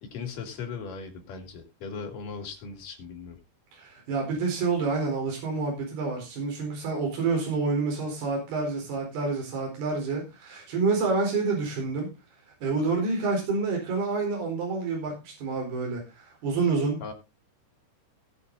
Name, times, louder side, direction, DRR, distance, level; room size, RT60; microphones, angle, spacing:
voice 1, 0.0-3.4 17.0-17.1, left 5 dB, 55° left, 3 dB, 3.7 m, -38 dB
voice 2, 3.7-12.1 12.6-17.0, right 4 dB, 70° right, -1 dB, 6.3 m, -28 dB
18.0 x 6.7 x 4.0 m, 0.27 s
omnidirectional pair, 4.8 m